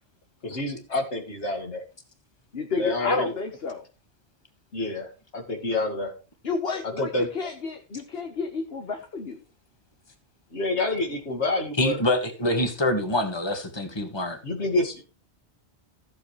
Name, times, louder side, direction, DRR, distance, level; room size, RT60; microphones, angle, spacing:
voice 1, 0.4-1.8 2.8-3.3 4.7-6.1 7.0-7.3 10.5-12.0 14.4-15.0, left 2 dB, 80° left, 3 dB, 2.5 m, -28 dB
voice 2, 2.5-3.8 6.4-9.4, left 4 dB, 60° left, 5 dB, 1.5 m, -31 dB
voice 3, 11.8-14.4, left 1 dB, 25° left, 6 dB, 1.9 m, -25 dB
14.5 x 8.3 x 3.2 m, 0.33 s
omnidirectional pair, 1.1 m